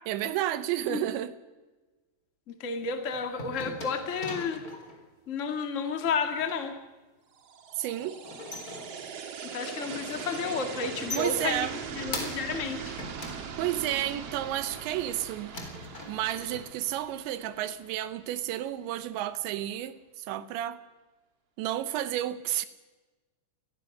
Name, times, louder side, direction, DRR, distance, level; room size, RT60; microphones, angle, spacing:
voice 1, 0.1-1.3 7.8-8.2 11.2-11.8 13.6-15.5 16.1-20.8 21.6-22.7, right 12 dB, 80° right, 3.2 m, -31 dB
voice 2, 2.5-4.6 5.3-6.8 9.5-13.0, left 5 dB, 65° left, 0.7 m, -32 dB
sound 1, 2.7-5.0 6.0-6.6 8.0-9.3 9.6-10.6 10.8-12.6 13.0-14.1 14.6-15.2 15.5-16.6, left 2 dB, 20° left, 3.5 m, -41 dB
sound 2, 7.4-18.4, right 7 dB, 55° right, 1.7 m, -41 dB
27.5 x 20.5 x 6.6 m
omnidirectional pair, 5.2 m